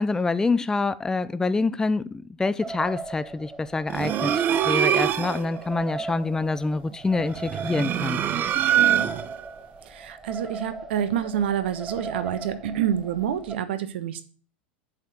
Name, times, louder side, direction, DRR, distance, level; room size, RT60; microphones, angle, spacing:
voice 1, 0.0-8.2, left 3 dB, 10° left, 0.5 m, -26 dB
sound 1, 2.6-13.6, right 3 dB, 10° right, 1.1 m, -38 dB
sound 2, 3.9-5.5 7.4-9.4, right 10 dB, 35° right, 0.8 m, -23 dB
voice 2, 9.8-14.2, right 9 dB, 75° right, 1.3 m, -28 dB
7.9 x 4.7 x 6.7 m
hypercardioid pair, 105°, 6 cm